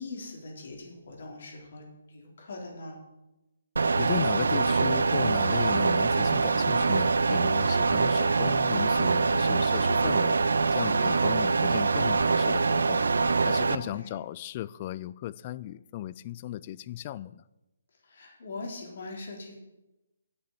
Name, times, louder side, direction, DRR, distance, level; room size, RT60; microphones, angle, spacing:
voice 1, 0.0-3.0 13.8-14.1 18.0-19.6, left 3 dB, 55° left, 0 dB, 3.5 m, -42 dB
sound 1, 3.8-13.8, right 4 dB, 70° right, 0.5 m, -24 dB
voice 2, 4.0-10.4 10.7-13.0 13.4-17.4, left 13 dB, 35° left, 18 dB, 0.4 m, -36 dB
8.8 x 6.8 x 7.4 m, 0.98 s
figure-of-eight pair, 140°, 0 cm